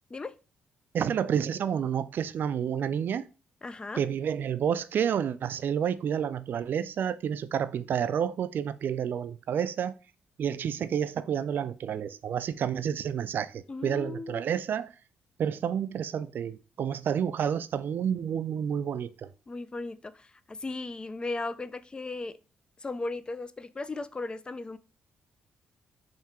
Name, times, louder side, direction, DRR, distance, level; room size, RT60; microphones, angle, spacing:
voice 1, 0.9-3.3 4.0-9.9 10.4-14.9 15.4-19.3, right 8 dB, 60° right, 0.4 m, -30 dB
voice 2, 3.6-4.1 13.7-14.4 19.5-22.3 22.8-24.8, left 3 dB, 25° left, 0.4 m, -36 dB
3.5 x 2.8 x 4.3 m
cardioid pair, 80°, 4 cm